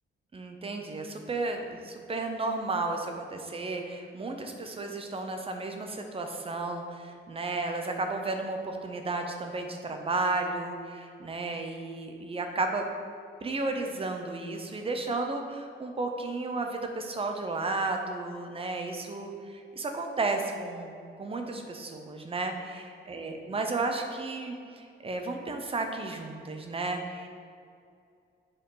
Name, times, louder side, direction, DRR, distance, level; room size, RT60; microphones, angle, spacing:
voice 1, 0.3-12.9 13.4-27.3, right 3 dB, 30° right, 4 dB, 0.7 m, -33 dB
7.6 x 4.8 x 3.8 m, 2.4 s
wide cardioid pair, 145°, 21 cm